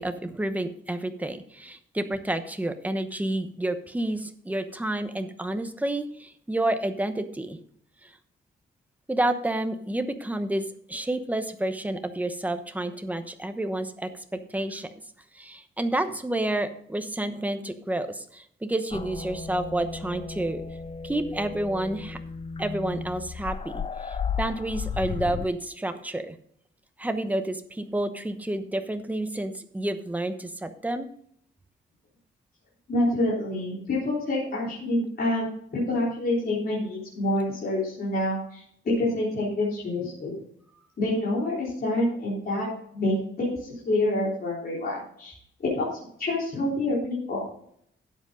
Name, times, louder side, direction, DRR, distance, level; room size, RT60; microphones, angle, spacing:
voice 1, 0.0-7.6 8.0-8.1 9.1-10.6 10.9-14.9 15.3-20.6 21.0-22.2 22.6-26.4 27.0-31.1, right 1 dB, 10° right, 8 dB, 0.9 m, -30 dB
sound 1, 18.9-25.5, left 5 dB, 30° left, 0.5 m, -34 dB
voice 2, 32.9-40.3 41.0-45.3 45.7-45.9 46.2-47.4, left 1 dB, 50° left, -6 dB, 3.8 m, -27 dB
12.5 x 8.1 x 3.8 m, 0.66 s
wide cardioid pair, 155°, 20 cm